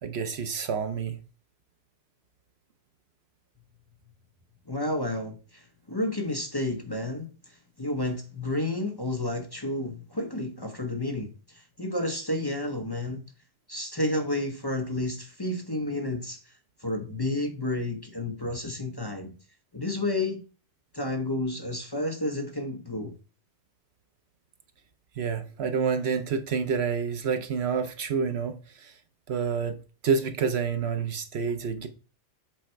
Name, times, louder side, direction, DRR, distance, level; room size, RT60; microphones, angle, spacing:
voice 1, 0.0-1.2 25.2-28.9 29.3-29.8 30.0-31.9, right 6 dB, 65° right, 1.0 m, -28 dB
voice 2, 4.7-13.2 13.7-16.5 16.8-19.4 19.7-20.4 20.9-23.1, left 1 dB, 20° left, 0.9 m, -31 dB
7.6 x 4.2 x 4.5 m
omnidirectional pair, 1.2 m